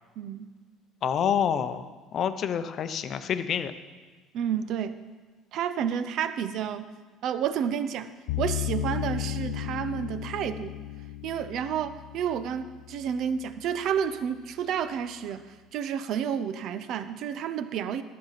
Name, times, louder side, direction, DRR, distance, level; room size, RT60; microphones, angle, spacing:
voice 1, 0.2-0.5 4.3-4.9 5.5-6.9 7.2-8.1 8.4-10.7 11.2-18.0, right 8 dB, 60° right, 12 dB, 0.6 m, -30 dB
voice 2, 1.0-1.8 2.1-3.7, left 8 dB, 45° left, 11 dB, 0.6 m, -27 dB
sound 1, 8.3-13.4, left 14 dB, 85° left, 0.3 m, -34 dB
11.5 x 7.1 x 5.9 m, 1.3 s
cardioid pair, 125°, 0 cm